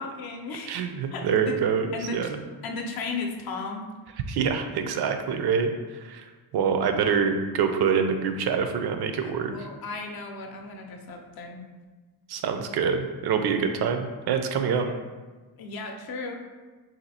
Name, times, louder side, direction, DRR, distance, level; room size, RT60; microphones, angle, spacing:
voice 1, 0.0-0.8 1.1-1.6 1.9-2.3 2.6-3.9 9.2-11.6 15.6-16.4, left 4 dB, 60° left, 3 dB, 0.6 m, -35 dB
voice 2, 0.7-2.4 4.3-9.7 12.3-14.9, right 6 dB, 65° right, 6 dB, 0.5 m, -26 dB
2.7 x 2.5 x 4.1 m, 1.3 s
cardioid pair, 110°, 42 cm